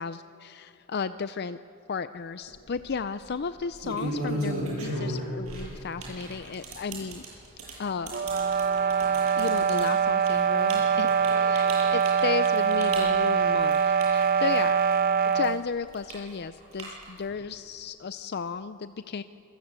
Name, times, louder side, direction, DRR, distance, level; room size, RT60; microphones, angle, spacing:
voice 1, 0.0-1.6 1.9-7.3 7.6-8.2 9.4-11.1 11.4-14.8 15.2-19.2, left 5 dB, 50° left, 12 dB, 0.5 m, -34 dB
sound 1, 2.5-2.8 3.6-14.9 15.2-17.3, right 1 dB, 85° right, 7.7 m, -35 dB
sound 2, 8.1-15.6, right 6 dB, 45° right, 0.6 m, -23 dB
27.0 x 20.5 x 8.2 m, 2.7 s
head